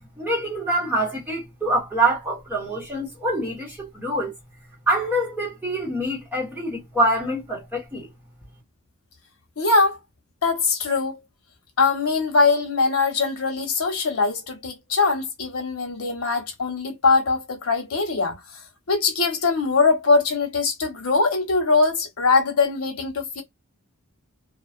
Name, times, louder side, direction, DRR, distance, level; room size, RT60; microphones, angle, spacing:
voice 1, 0.2-4.3 4.9-8.1, right 1 dB, 10° right, 1.2 m, -25 dB
voice 2, 9.6-10.0 10.4-11.2 11.8-18.4 18.9-23.4, left 4 dB, 90° left, 1.0 m, -22 dB
2.4 x 2.4 x 2.4 m
head